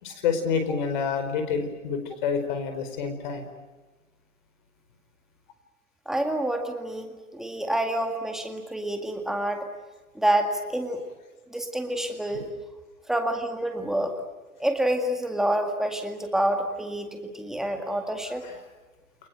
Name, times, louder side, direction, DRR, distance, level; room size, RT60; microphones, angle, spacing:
voice 1, 0.0-3.4 18.4-18.5, left 6 dB, 35° left, 8 dB, 4.8 m, -28 dB
voice 2, 6.1-9.7 10.2-11.0 11.5-12.5 13.1-14.2 14.6-18.4, right 1 dB, ahead, 4 dB, 2.0 m, -27 dB
29.5 x 22.0 x 9.2 m, 1.2 s
hypercardioid pair, 145°, 42 cm